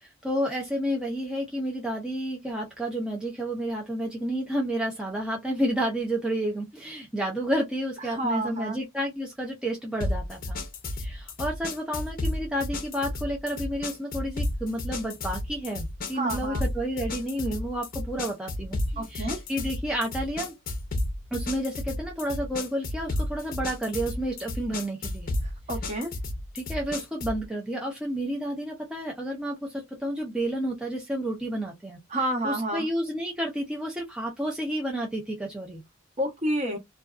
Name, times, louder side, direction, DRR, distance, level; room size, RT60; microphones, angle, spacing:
voice 1, 0.0-10.6 11.0-20.5 21.3-25.3 26.5-32.0 32.4-35.8, right 1 dB, 5° right, 0.4 m, -30 dB
voice 2, 8.1-8.8 16.1-16.6 19.0-19.4 25.7-26.1 32.1-32.9 36.2-36.8, right 1 dB, 35° right, 0.8 m, -29 dB
sound 1, 10.0-27.4, left 1 dB, 45° left, 0.6 m, -32 dB
2.6 x 2.3 x 2.2 m
head